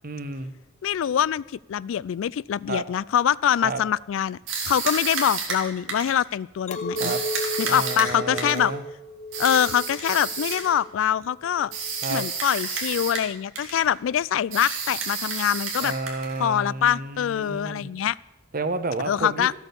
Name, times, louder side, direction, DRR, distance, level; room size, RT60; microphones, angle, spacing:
voice 1, 0.0-0.5 2.7-2.8 3.6-3.8 6.9-7.2 7.7-8.8 12.0-12.3 15.8-18.0 18.5-19.5, right 3 dB, 50° right, 11 dB, 0.9 m, -31 dB
voice 2, 0.8-1.4 1.7-4.4 4.6-7.1 7.6-8.7 9.4-11.7 12.1-15.9 16.4-18.2 19.1-19.5, left 9 dB, 85° left, 22 dB, 0.3 m, -24 dB
sound 1, 4.5-6.2 7.0-8.7 9.3-10.7 11.7-13.3 13.6-13.9 14.5-16.4, right 5 dB, 85° right, 2.7 m, -30 dB
Chink clink, 6.7-12.0, equal, 35° left, 0.8 m, -34 dB
14.0 x 8.2 x 6.9 m, 0.97 s
head